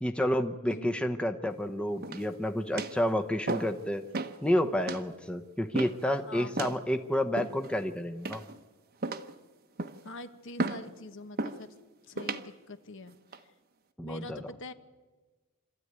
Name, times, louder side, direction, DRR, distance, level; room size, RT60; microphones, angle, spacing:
voice 1, 0.0-4.0 4.4-8.4 14.0-14.4, equal, 5° left, 6 dB, 0.8 m, -30 dB
voice 2, 0.7-1.0 6.2-6.8 10.0-11.7 12.1-13.2 13.4-13.5 14.0-14.7, left 2 dB, 55° left, 10 dB, 1.1 m, -44 dB
sound 1, 2.0-2.4 2.8-3.0 3.5-3.8 4.1-4.4 4.9-5.1 5.7-6.1 6.6-6.8 7.4-7.8 8.2-8.6 9.0-9.4 9.8-10.1 10.6-10.9 11.4-11.6 12.2-12.5 13.1-13.4, right 2 dB, 45° right, 0.9 m, -34 dB
26.0 x 13.5 x 9.6 m, 1.3 s
head